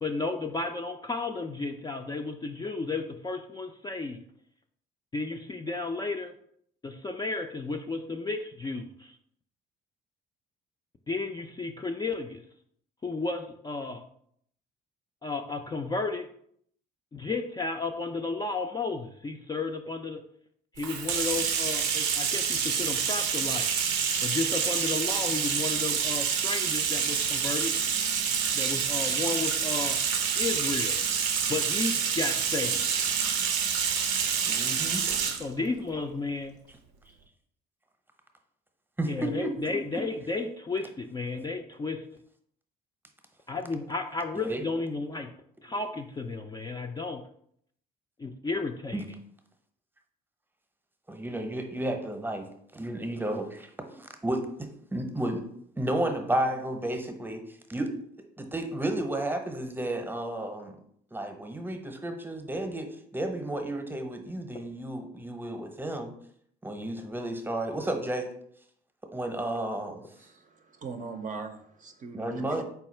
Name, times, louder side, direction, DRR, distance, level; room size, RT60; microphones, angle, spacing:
voice 1, 0.0-4.2 5.1-6.3 6.8-9.1 11.1-12.4 13.0-14.0 15.2-16.3 17.1-20.2 20.7-23.7 24.2-27.7 28.5-30.0 30.4-31.0 31.5-32.9 35.4-36.6 39.0-42.0 43.5-45.3 45.6-47.2 48.2-49.2, left 3 dB, 20° left, 3 dB, 0.4 m, -33 dB
Bathtub (filling or washing), 20.8-35.4, right 7 dB, 85° right, 0.5 m, -27 dB
voice 2, 34.4-35.1 39.0-40.0 44.3-44.6 48.9-49.0 51.1-52.5 52.7-55.5 55.8-57.4 57.7-57.9 58.4-60.7 61.1-66.1 66.6-68.3 69.1-70.0 72.1-72.6, right 1 dB, 10° right, 5 dB, 0.8 m, -32 dB
voice 3, 70.2-72.6, right 4 dB, 40° right, 5 dB, 0.5 m, -41 dB
4.1 x 2.3 x 4.3 m, 0.67 s
hypercardioid pair, 60°, 20 cm